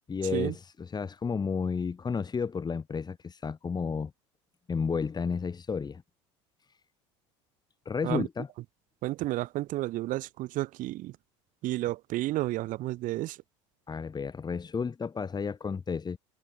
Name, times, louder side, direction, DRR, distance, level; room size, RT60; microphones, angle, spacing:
voice 1, 0.1-4.1 4.7-6.0 7.8-8.5 13.9-16.2, left 5 dB, 25° left, 7.9 m, -32 dB
voice 2, 9.0-11.2 11.6-13.4, right 16 dB, 55° right, 4.8 m, -31 dB
hypercardioid pair, 85°, 16 cm